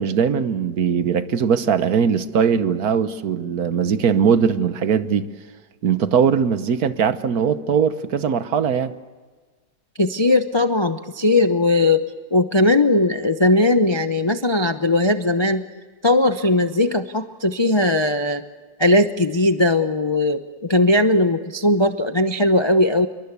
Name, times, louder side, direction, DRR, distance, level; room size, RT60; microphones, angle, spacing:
voice 1, 0.0-5.3 5.8-8.9, right 7 dB, 60° right, 1.4 m, -20 dB
voice 2, 10.0-12.0 12.3-15.6 16.0-18.4 18.8-20.4 20.7-23.1, left 2 dB, 35° left, 0.4 m, -18 dB
27.5 x 23.0 x 8.2 m
omnidirectional pair, 2.0 m